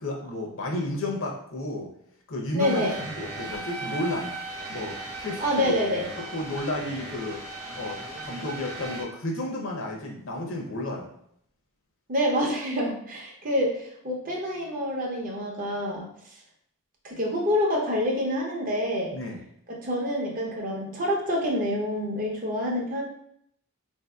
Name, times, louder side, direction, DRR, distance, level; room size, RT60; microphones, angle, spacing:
voice 1, 0.0-1.9 2.3-4.3 4.7-7.4 7.8-11.1 19.1-19.4, left 1 dB, 60° left, 0 dB, 0.6 m, -32 dB
voice 2, 2.5-2.9 5.4-6.1 12.1-16.1 17.0-19.2 19.7-23.0, equal, 35° right, -2 dB, 0.7 m, -27 dB
sound 1, 2.6-9.0, right 2 dB, 70° right, 0.8 m, -37 dB
3.9 x 2.6 x 2.2 m, 0.71 s
head